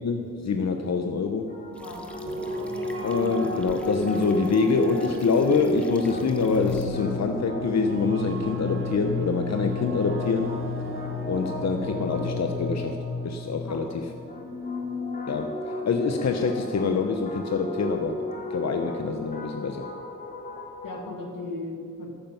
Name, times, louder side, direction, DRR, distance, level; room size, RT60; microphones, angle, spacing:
voice 1, 0.0-1.5 3.0-10.6 11.2-13.9 15.3-18.2 18.5-19.9, left 4 dB, 55° left, 5 dB, 0.8 m, -25 dB
sound 1, 1.5-21.1, left 3 dB, 25° left, 2.4 m, -33 dB
sound 2, 1.7-6.9, equal, 5° left, 1.2 m, -49 dB
voice 2, 1.8-2.4 13.7-14.0 20.8-22.1, left 2 dB, 85° left, 2 dB, 1.8 m, -37 dB
sound 3, 2.3-12.9, right 5 dB, 40° right, 0.8 m, -40 dB
13.5 x 8.7 x 5.6 m, 2.1 s
wide cardioid pair, 90°, 32 cm